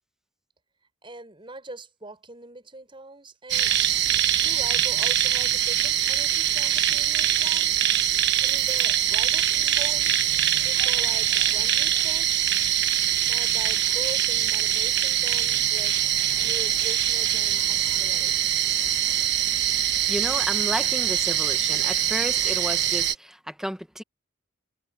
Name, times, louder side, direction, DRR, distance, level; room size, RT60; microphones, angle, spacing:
voice 1, 1.0-3.7 4.4-7.9 8.3-10.1 10.6-12.6 13.2-16.1 16.4-18.4, right 2 dB, 25° right, 6.8 m, -42 dB
sound 1, 3.5-23.1, right 11 dB, 60° right, 1.2 m, -23 dB
voice 2, 20.1-24.0, equal, 5° right, 1.5 m, -32 dB
head